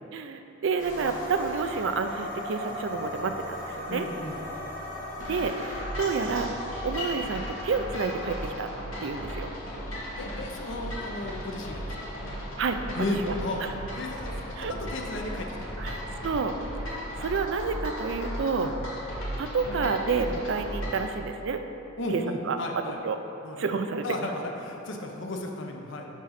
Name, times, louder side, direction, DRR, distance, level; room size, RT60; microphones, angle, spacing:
voice 1, 0.1-4.1 5.3-8.7 9.0-9.5 12.6-12.8 13.3-13.4 13.6-13.7 14.6-14.7 15.8-16.5 16.9-18.7 19.4-21.6 22.1-22.2 22.5-22.6 23.0-23.2 23.6-24.0, right 5 dB, 65° right, 7 dB, 0.4 m, -29 dB
sound 1, 0.8-17.8, left 1 dB, 40° left, 1.3 m, -40 dB
voice 2, 3.9-4.4 10.2-11.8 12.9-13.6 13.9-15.5 15.8-16.0 18.6-18.7 22.0-23.0 23.4-23.6 24.0-26.1, left 1 dB, 65° left, 2 dB, 0.7 m, -34 dB
sound 2, 5.2-21.1, equal, 90° left, 1.7 m, -36 dB
7.4 x 3.8 x 5.7 m, 2.9 s
head